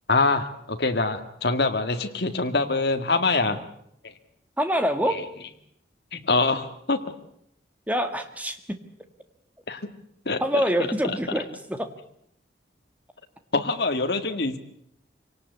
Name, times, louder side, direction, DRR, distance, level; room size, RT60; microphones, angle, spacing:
voice 1, 0.1-3.6 5.1-5.3 6.1-7.0 9.7-9.9 10.3-10.4 13.5-14.6, left 3 dB, 65° left, 6 dB, 1.9 m, -24 dB
voice 2, 4.6-5.2 7.9-8.6 10.4-11.9, equal, 10° right, 7 dB, 1.7 m, -25 dB
25.0 x 18.0 x 8.2 m, 0.73 s
head